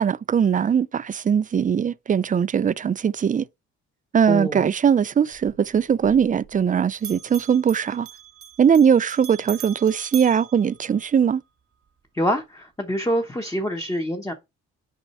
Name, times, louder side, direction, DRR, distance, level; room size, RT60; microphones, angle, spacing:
voice 1, 0.0-3.4 4.1-8.1 8.6-11.4, right 7 dB, 25° right, 0.4 m, -20 dB
voice 2, 4.3-4.6 12.1-14.3, equal, 10° left, 1.1 m, -25 dB
Bell, 5.3-6.7 6.9-11.4, right 9 dB, 50° right, 1.0 m, -41 dB
6.3 x 5.3 x 4.4 m
cardioid pair, 90°, 30 cm